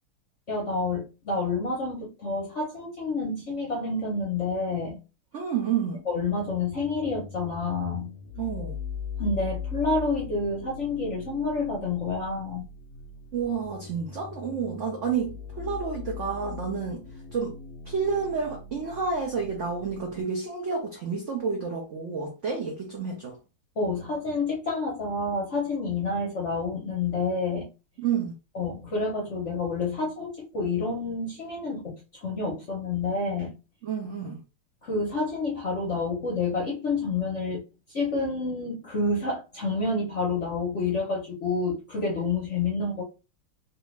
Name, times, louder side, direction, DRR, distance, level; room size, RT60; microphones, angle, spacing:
voice 1, 0.5-5.0 6.1-8.2 9.2-12.6 23.8-27.7 28.5-33.6 34.8-37.6 37.9-43.0, left 3 dB, 55° left, 0.8 m, -29 dB
voice 2, 5.3-6.0 8.4-8.8 13.3-17.0 17.3-17.6 17.9-23.4 28.0-28.3 33.8-34.4, right 6 dB, 70° right, 0.7 m, -30 dB
sound 1, 6.5-20.2, left 6 dB, 85° left, 0.7 m, -40 dB
3.3 x 2.6 x 3.1 m
omnidirectional pair, 2.3 m